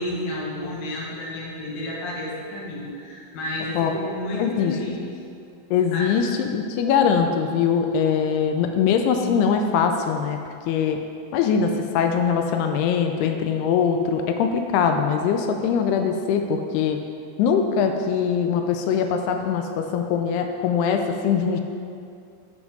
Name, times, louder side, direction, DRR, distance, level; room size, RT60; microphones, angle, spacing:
voice 1, 0.0-5.1 5.9-6.1, left 1 dB, 55° left, -4 dB, 2.3 m, -31 dB
voice 2, 4.4-4.8 5.7-10.4 10.7-11.0 11.3-17.0 17.4-21.6, left 7 dB, 85° left, 5 dB, 2.6 m, -22 dB
7.2 x 6.0 x 5.3 m, 2.4 s
omnidirectional pair, 4.5 m